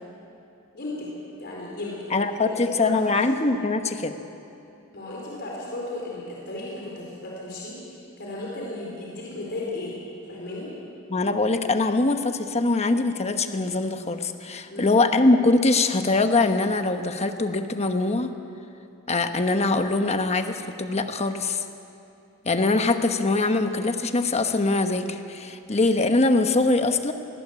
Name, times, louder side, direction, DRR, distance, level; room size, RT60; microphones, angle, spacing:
voice 1, 0.7-1.1 1.4-3.2 4.9-10.0 10.3-10.7 14.7-15.0, left 2 dB, 50° left, -4 dB, 4.4 m, -35 dB
voice 2, 2.1-4.1 11.1-18.3 19.1-21.6 22.4-27.1, left 2 dB, 30° left, 7 dB, 1.1 m, -23 dB
20.0 x 19.0 x 8.5 m, 2.7 s
head